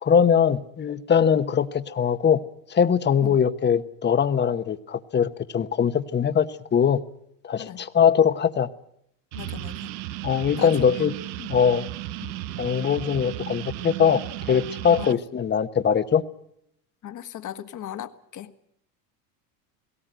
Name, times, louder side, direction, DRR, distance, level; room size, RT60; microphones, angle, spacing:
voice 1, 0.0-2.4 2.7-7.0 7.4-8.7 10.2-11.1 11.5-11.9 12.6-14.2 14.5-16.2, left 7 dB, 20° left, 12 dB, 1.0 m, -21 dB
voice 2, 9.3-9.9 10.6-11.1 11.4-11.5 12.2-12.3 15.0-15.2 17.0-18.5, left 11 dB, 40° left, 10 dB, 1.5 m, -37 dB
sound 1, 9.3-15.1, right 15 dB, 80° right, 0.9 m, -35 dB
18.0 x 17.5 x 9.1 m, 0.73 s
supercardioid pair, 110°, 49 cm